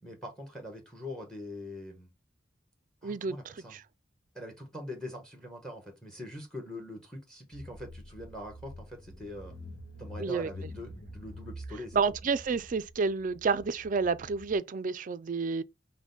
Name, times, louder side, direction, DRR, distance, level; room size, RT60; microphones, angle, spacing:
voice 1, 0.0-2.1 3.0-3.8 4.3-9.5 10.0-12.0, left 1 dB, 5° left, 1.2 m, -43 dB
voice 2, 3.0-3.4 3.7-3.8 10.2-10.5 11.9-15.6, right 4 dB, 45° right, 0.4 m, -29 dB
Car / Engine, 7.5-14.6, left 1 dB, 60° left, 1.3 m, -47 dB
5.9 x 2.2 x 4.0 m
head